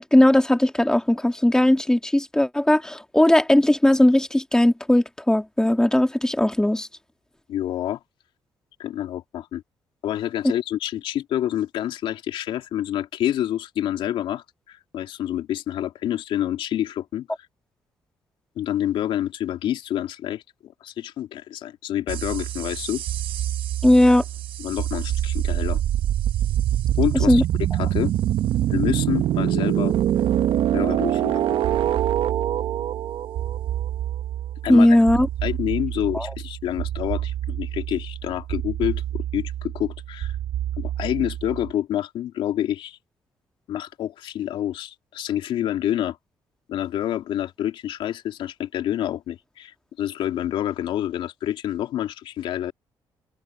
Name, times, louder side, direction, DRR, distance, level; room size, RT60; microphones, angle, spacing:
voice 1, 0.0-6.9 23.8-24.2 27.3-27.4 34.7-35.3 36.1-36.3, left 1 dB, 5° left, 2.6 m, -18 dB
voice 2, 7.5-8.0 8.8-9.6 10.0-17.3 18.6-23.0 24.6-25.8 27.0-27.4 27.8-28.1 28.7-29.9 30.7-31.6 34.6-35.0 35.4-40.4 40.8-43.0 43.7-46.2 46.7-52.7, left 11 dB, 80° left, 3.1 m, -28 dB
sound 1, 22.1-41.7, right 11 dB, 75° right, 1.0 m, -25 dB
cardioid pair, 75°, 9 cm